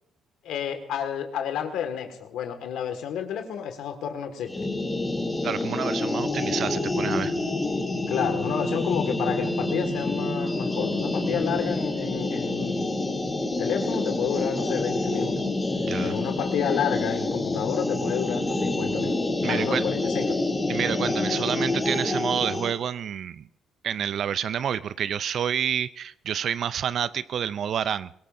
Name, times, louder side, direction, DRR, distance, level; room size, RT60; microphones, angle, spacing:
voice 1, 0.4-4.7 8.1-12.9 13.6-15.4 16.0-19.2 19.5-20.4, left 8 dB, 80° left, 6 dB, 1.8 m, -30 dB
sound 1, 4.5-22.7, left 2 dB, 15° left, 2.9 m, -27 dB
voice 2, 5.4-7.3 15.8-16.2 19.4-19.8 20.7-23.5 23.8-28.2, right 8 dB, 65° right, 16 dB, 0.4 m, -29 dB
24.0 x 16.5 x 2.6 m, 0.77 s
cardioid pair, 80°, 0 cm